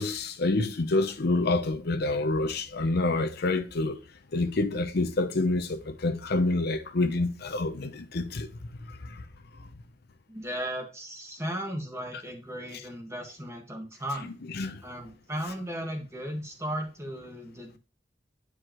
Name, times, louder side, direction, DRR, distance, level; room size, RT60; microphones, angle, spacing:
voice 1, 0.0-4.0 4.3-8.5 9.0-9.2 14.5-14.8, left 2 dB, 60° left, 0.7 m, -27 dB
voice 2, 10.3-14.3 14.8-17.8, equal, 15° right, 1.6 m, -36 dB
9.8 x 4.8 x 3.0 m
head